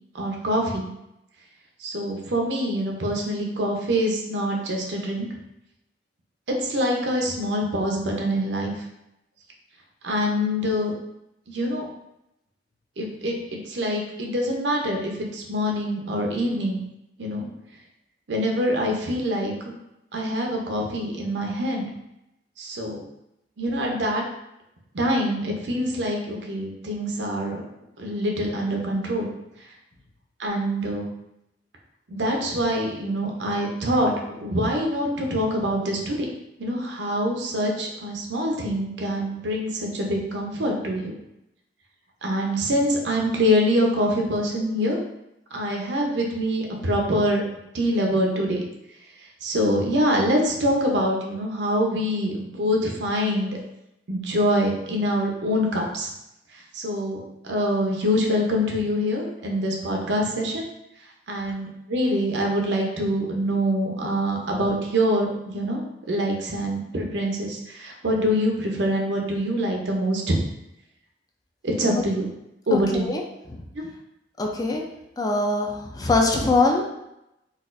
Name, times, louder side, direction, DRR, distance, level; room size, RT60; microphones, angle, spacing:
voice 1, 0.1-0.9 1.8-5.3 6.5-8.7 10.0-10.9 11.5-11.8 13.0-13.3 13.7-16.8 17.2-17.5 18.3-19.5 20.1-21.9 22.6-23.0 23.6-24.2 24.9-27.6 28.0-29.3 30.4-31.0 32.1-36.2 36.6-41.1 42.2-45.0 45.5-47.4 47.7-48.6 49.4-53.6 54.1-56.1 56.7-60.6 61.3-70.4 71.6-72.3 72.7-73.1 73.7-73.8, equal, 75° right, 0 dB, 0.7 m, -25 dB
voice 2, 74.4-74.8 75.2-76.9, left 2 dB, 20° left, 1 dB, 0.4 m, -22 dB
4.0 x 2.4 x 2.5 m, 0.85 s
head